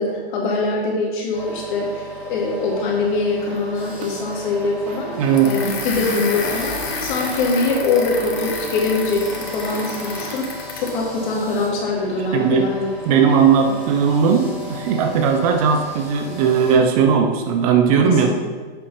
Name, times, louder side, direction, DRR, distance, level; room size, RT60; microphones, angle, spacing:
voice 1, 0.0-5.1 5.4-10.4 10.8-12.9 18.0-18.3, left 3 dB, 50° left, -3 dB, 2.3 m, -23 dB
sound 1, 1.3-16.7, left 1 dB, 5° right, 2.2 m, -36 dB
sound 2, 3.3-10.6, right 3 dB, 50° right, 1.6 m, -39 dB
voice 2, 5.1-5.6 12.3-12.7 13.1-18.3, right 6 dB, 35° right, 5 dB, 0.6 m, -17 dB
sound 3, 5.4-11.0, left 4 dB, 80° left, 1.6 m, -30 dB
7.9 x 5.0 x 4.3 m, 1.4 s
supercardioid pair, 160°, 31 cm